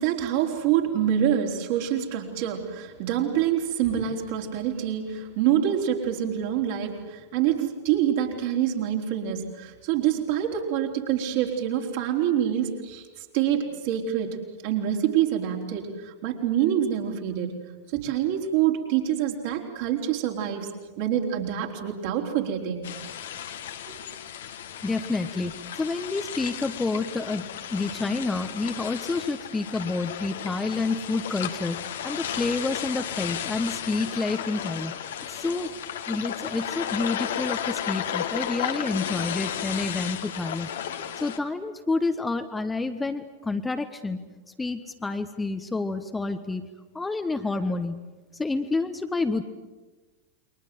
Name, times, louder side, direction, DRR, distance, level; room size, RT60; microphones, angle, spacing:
voice 1, 0.0-14.4 14.6-17.5 17.9-20.7 21.0-22.9 23.9-24.0, right 10 dB, 50° right, 1 dB, 4.2 m, -26 dB
sound 1, 22.8-41.4, left 9 dB, 60° left, 1.8 m, -34 dB
voice 2, 24.8-34.9 35.3-35.7 36.1-40.7 41.2-44.3 44.6-46.7 46.9-48.0 48.3-49.4, left 3 dB, 10° left, 7 dB, 1.3 m, -29 dB
29.5 x 23.5 x 7.8 m, 1.2 s
figure-of-eight pair, 90°, 0 cm